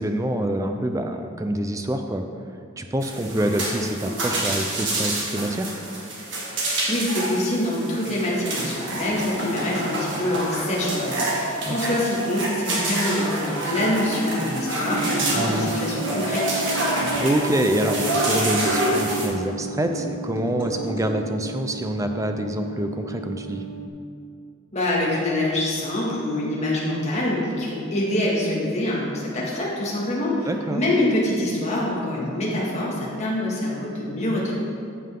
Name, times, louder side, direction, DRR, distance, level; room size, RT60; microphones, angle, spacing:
voice 1, 0.0-2.2 2.8-5.8 11.7-11.8 15.3-15.7 17.2-23.6 30.5-30.8, right 1 dB, 15° right, 6 dB, 0.4 m, -26 dB
sound 1, 3.0-19.3, right 1 dB, 60° right, 1.8 m, -27 dB
voice 2, 6.9-16.5 24.7-34.5, left 1 dB, 30° left, -5 dB, 1.9 m, -25 dB
sound 2, 14.1-15.3 16.0-17.2 17.9-19.2 19.9-21.1, equal, 65° left, 2.0 m, -36 dB
sound 3, 14.9-23.9, right 5 dB, 80° right, 0.7 m, -35 dB
14.0 x 5.6 x 3.8 m, 2.4 s
head